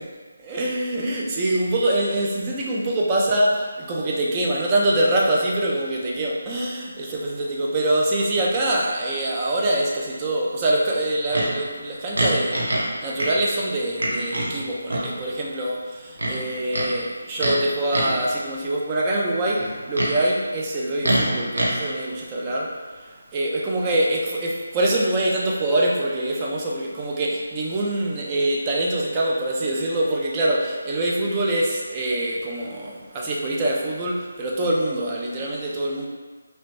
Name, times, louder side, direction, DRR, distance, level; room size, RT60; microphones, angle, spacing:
voice 1, 0.4-36.1, right 1 dB, 20° right, -3 dB, 0.4 m, -24 dB
Livestock farm animals working animals, 11.3-11.5 12.2-12.9 13.2-13.3 14.0-14.5 14.9-15.1 16.2-16.9 17.4-17.6 17.9-18.2 19.6-20.1 21.0-21.7, right 1 dB, 75° right, 0.6 m, -24 dB
2.9 x 2.1 x 2.5 m, 1.4 s
figure-of-eight pair, 160°, 0 cm